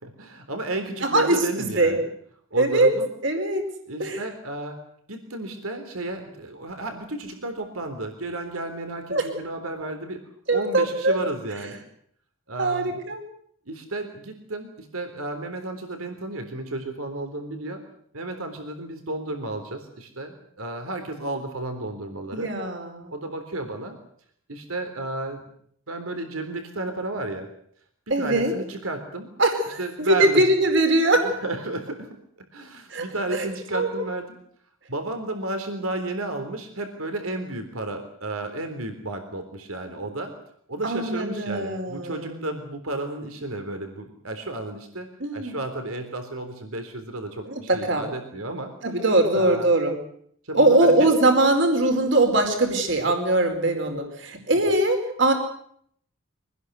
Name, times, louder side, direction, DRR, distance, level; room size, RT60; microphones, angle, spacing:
voice 1, 0.0-2.0 2.5-3.1 3.9-4.8 5.1-10.2 10.5-11.8 12.5-13.0 13.7-17.8 18.1-22.5 23.1-24.0 24.5-25.4 25.9-27.5 28.1-29.3 29.8-30.4 31.2-32.1 32.5-34.4 34.9-40.3 40.7-48.7 49.3-49.7 50.4-51.1, right 2 dB, 85° right, 6 dB, 3.7 m, -33 dB
voice 2, 1.0-2.0 2.6-2.9 3.2-3.6 4.0-4.2 9.1-9.3 10.5-11.2 12.6-13.2 22.3-23.1 28.1-28.5 29.4-31.3 32.9-33.0 33.3-33.9 40.8-42.4 45.2-45.6 47.5-48.0 48.8-49.9 50.5-55.3, right 2 dB, 60° right, 5 dB, 4.7 m, -21 dB
25.0 x 19.5 x 8.1 m, 0.65 s
head